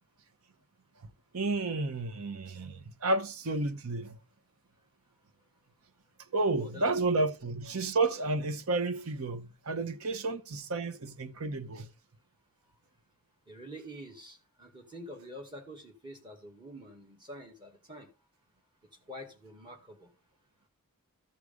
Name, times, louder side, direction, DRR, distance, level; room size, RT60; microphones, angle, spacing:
voice 1, 1.3-4.2 6.3-11.9, right 3 dB, 80° right, 0.9 m, -31 dB
voice 2, 6.6-7.2 13.5-18.1 19.1-20.1, equal, 20° right, 1.8 m, -47 dB
13.5 x 4.9 x 5.1 m
head